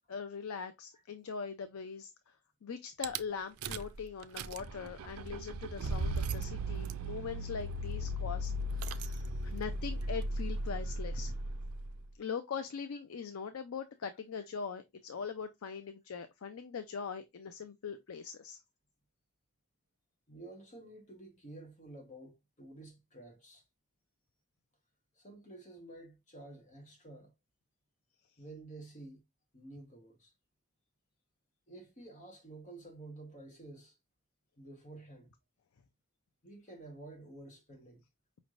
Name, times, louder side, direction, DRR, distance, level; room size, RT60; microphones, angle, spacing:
voice 1, 0.1-2.4 2.6-11.3 12.2-18.6, left 6 dB, 75° left, 0.5 m, -41 dB
Rattle / Car / Engine starting, 3.0-3.2 3.6-4.0 4.2-12.0, right 1 dB, 85° right, 0.4 m, -37 dB
voice 2, 20.3-23.6 25.2-27.3 28.4-29.2 29.5-30.3 31.7-34.0 34.6-35.3 36.4-38.0, right 2 dB, 35° left, 1.1 m, -51 dB
5.2 x 3.2 x 2.4 m
head